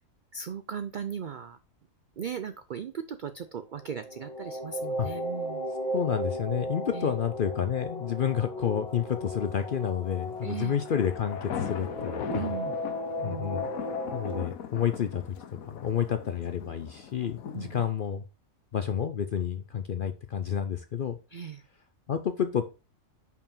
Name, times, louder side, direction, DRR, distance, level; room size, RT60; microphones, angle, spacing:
voice 1, 0.3-1.6 2.2-5.7 6.9-7.1 10.4-10.8 12.3-12.8 13.2-13.7 17.5-17.8 21.3-21.6, right 7 dB, 80° right, 10 dB, 0.4 m, -37 dB
sound 1, 3.8-14.4, left 1 dB, 15° left, 2.0 m, -36 dB
voice 2, 5.9-12.5 13.2-13.7 14.1-15.3 15.7-18.2 18.7-21.2 22.1-22.7, left 8 dB, 60° left, 9 dB, 0.6 m, -30 dB
sound 2, 10.3-17.9, left 8 dB, 80° left, 1.3 m, -40 dB
5.5 x 4.7 x 5.4 m, 0.31 s
omnidirectional pair, 1.4 m